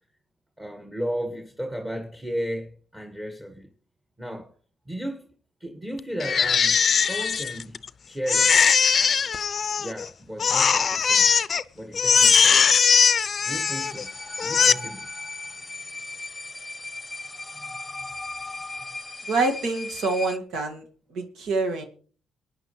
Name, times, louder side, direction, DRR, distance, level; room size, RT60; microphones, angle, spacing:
voice 1, 0.6-3.7 4.2-4.5 4.9-5.3 5.6-7.8 8.1-8.6 9.8-11.3 11.8-12.8 13.4-14.1 14.4-15.1 17.5-17.7, equal, 15° right, 1.7 m, -34 dB
Crying sobbing, 6.2-7.9 8.3-10.1 10.4-11.6 11.9-14.0 14.4-14.7, left 6 dB, 45° left, 0.5 m, -20 dB
sound 1, 13.4-20.4, left 3 dB, 15° left, 0.9 m, -37 dB
voice 2, 19.3-20.9 21.1-21.8, right 3 dB, 75° right, 2.0 m, -26 dB
23.0 x 9.4 x 3.2 m
cardioid pair, 90°, 0 cm